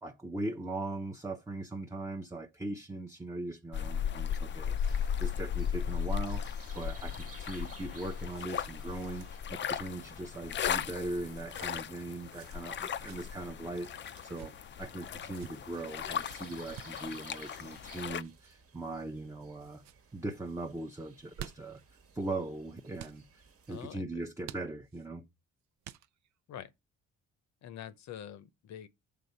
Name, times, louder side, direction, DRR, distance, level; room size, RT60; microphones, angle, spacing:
voice 1, 0.0-6.4 6.7-19.8 20.1-21.8 22.1-23.4 23.7-25.2, right 2 dB, 10° right, 0.7 m, -40 dB
sound 1, 3.7-18.2, left 8 dB, 40° left, 0.4 m, -36 dB
sound 2, 4.8-23.9, right 4 dB, 50° right, 1.2 m, -56 dB
sound 3, 7.6-8.8 9.0-9.2 10.1-10.4 11.5-11.9 12.8-13.2 14.1-14.5 15.2-15.5 16.3-17.0 18.2-18.5 19.1-19.5 19.8-20.0 21.1-21.8 23.0-23.2 24.4-25.1 25.8-26.4, right 10 dB, 65° right, 0.5 m, -50 dB
voice 2, 23.7-24.2 26.5-26.7 27.6-28.9, left 10 dB, 65° left, 0.8 m, -45 dB
6.8 x 3.7 x 5.5 m
cardioid pair, 90°, 30 cm